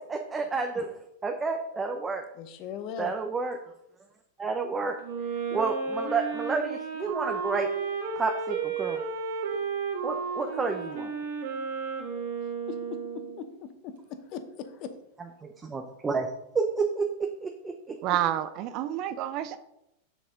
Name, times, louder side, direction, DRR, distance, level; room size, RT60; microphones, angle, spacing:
voice 1, 0.1-0.9 1.2-2.2 3.0-3.6 4.4-5.0 5.5-7.7 8.2-9.0 10.0-11.1 15.4-16.3 16.5-17.9, right 4 dB, 20° right, 3 dB, 0.7 m, -30 dB
voice 2, 2.4-3.1 12.7-12.8 13.4-13.9 14.3-14.9, left 8 dB, 50° left, 9 dB, 0.9 m, -38 dB
Wind instrument woodwind instrument, 5.0-13.4, right 5 dB, 65° right, 1.9 m, -33 dB
voice 3, 18.0-19.6, right 12 dB, 45° right, 12 dB, 0.5 m, -29 dB
7.0 x 6.2 x 3.8 m, 0.83 s
hypercardioid pair, 100°, 0 cm